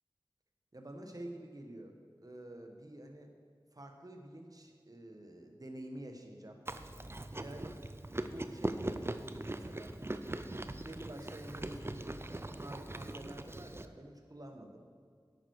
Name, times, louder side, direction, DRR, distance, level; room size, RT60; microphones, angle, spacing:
voice 1, 0.7-1.9 2.2-3.3 3.7-6.6 7.4-7.8 8.2-9.9 10.8-12.2 12.5-14.8, right 1 dB, 45° right, 3 dB, 1.3 m, -48 dB
Chewing mastication, 6.7-13.9, right 1 dB, 30° right, 0.6 m, -41 dB
11.0 x 9.0 x 4.9 m, 2.1 s
wide cardioid pair, 55°, 9 cm